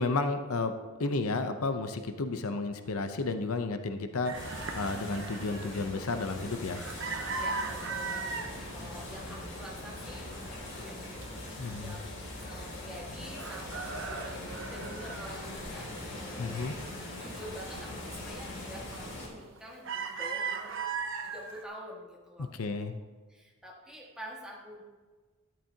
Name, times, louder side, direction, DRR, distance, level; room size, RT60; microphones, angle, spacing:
voice 1, 0.0-6.8 11.6-11.9 16.4-16.8 22.4-23.0, left 3 dB, 85° left, 8 dB, 0.7 m, -32 dB
sound 1, 4.2-8.5 9.0-9.6 9.9-11.2 11.7-11.8 12.1-13.0 13.3-16.1 16.5-17.6 18.0-18.2 18.7-19.1 19.4-21.6, right 5 dB, 60° right, 0.8 m, -38 dB
sound 2, 4.3-19.3, left 1 dB, 55° left, 2.7 m, -41 dB
voice 2, 7.3-16.7 17.2-20.9 21.2-22.9 23.3-24.8, equal, 5° right, -3 dB, 1.7 m, -47 dB
12.5 x 10.5 x 2.8 m, 1.4 s
head